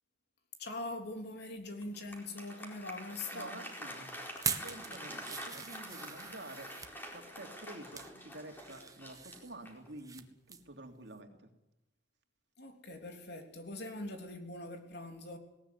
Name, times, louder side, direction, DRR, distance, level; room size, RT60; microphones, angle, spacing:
voice 1, 0.6-3.6 12.6-15.4, left 2 dB, 60° left, 4 dB, 3.4 m, -42 dB
Applause, 1.8-9.9, equal, 10° left, 4.4 m, -47 dB
voice 2, 3.3-4.2 4.6-6.7 7.1-11.5, right 2 dB, 65° right, 4 dB, 2.9 m, -49 dB
sound 1, 4.3-6.9 7.6-8.1 8.5-10.2 10.5-10.7 11.1-11.2, right 5 dB, 20° right, 1.5 m, -41 dB
19.5 x 18.5 x 9.7 m, 0.88 s
head